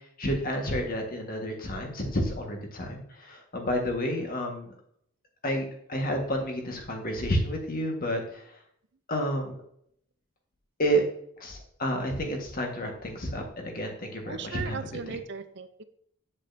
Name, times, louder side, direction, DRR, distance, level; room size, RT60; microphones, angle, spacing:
voice 1, 0.2-4.7 5.4-8.4 9.1-9.6 10.8-11.0 11.4-14.8 15.1-15.2, equal, 40° left, 2 dB, 1.6 m, -30 dB
voice 2, 14.2-15.8, right 5 dB, 55° right, 10 dB, 0.6 m, -37 dB
8.2 x 7.5 x 2.7 m, 0.68 s
head